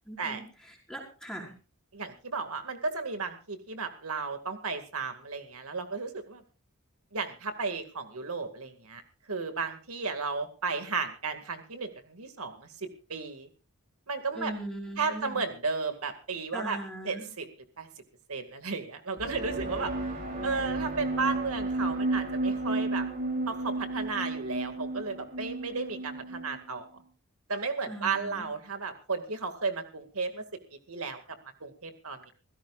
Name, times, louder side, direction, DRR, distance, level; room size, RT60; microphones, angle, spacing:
voice 1, 0.1-1.5 14.3-15.4 16.5-17.3 27.9-28.5, right 1 dB, 5° left, -1 dB, 5.3 m, -40 dB
voice 2, 1.9-6.4 7.1-9.0 9.3-12.7 13.1-13.5 14.1-14.5 15.0-16.8 17.0-17.5 17.8-17.9 18.3-19.9 20.4-23.1 23.5-26.9 27.5-30.4 30.9-31.2 31.6-32.3, right 4 dB, 80° right, 7 dB, 2.2 m, -34 dB
sound 1, 19.2-26.7, right 2 dB, 40° right, 3.4 m, -32 dB
25.5 x 16.5 x 2.5 m, 0.35 s
head